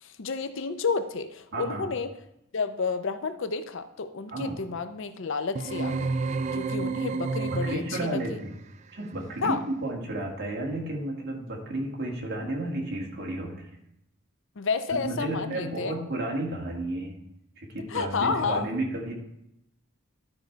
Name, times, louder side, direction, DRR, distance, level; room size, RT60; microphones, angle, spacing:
voice 1, 0.0-2.1 2.5-6.1 6.6-8.4 9.4-9.6 14.6-15.9 17.9-18.7, left 4 dB, 65° left, 10 dB, 0.5 m, -30 dB
voice 2, 1.5-1.8 4.3-4.6 7.5-8.5 8.9-13.7 14.9-17.1 17.6-19.1, right 1 dB, 50° right, -1 dB, 1.9 m, -32 dB
sound 1, 5.6-8.2, right 3 dB, 35° right, 0.3 m, -30 dB
11.5 x 5.2 x 4.5 m, 0.81 s
head